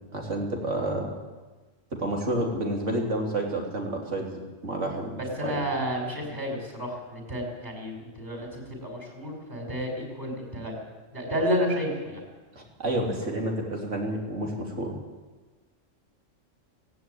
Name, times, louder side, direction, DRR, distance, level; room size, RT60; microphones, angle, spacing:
voice 1, 0.1-1.1 1.9-5.6 12.6-15.0, right 1 dB, 65° right, 0 dB, 3.7 m, -30 dB
voice 2, 5.4-10.8 11.1-12.2, equal, 35° right, 1 dB, 5.5 m, -31 dB
17.5 x 16.0 x 9.5 m, 1.3 s
omnidirectional pair, 1.3 m